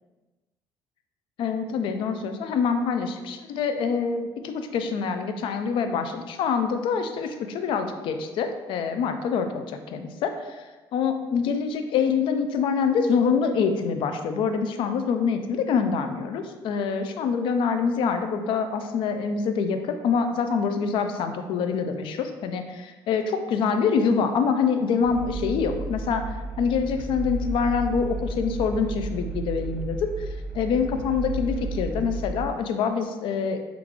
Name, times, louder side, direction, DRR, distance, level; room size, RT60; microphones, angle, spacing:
voice 1, 1.4-9.6 9.9-10.6 10.9-26.2 26.6-33.6, left 6 dB, 65° left, 7 dB, 0.4 m, -25 dB
sound 1, 25.0-32.4, right 3 dB, ahead, 0.6 m, -33 dB
3.6 x 2.4 x 3.0 m, 1.2 s
cardioid pair, 130°, 9 cm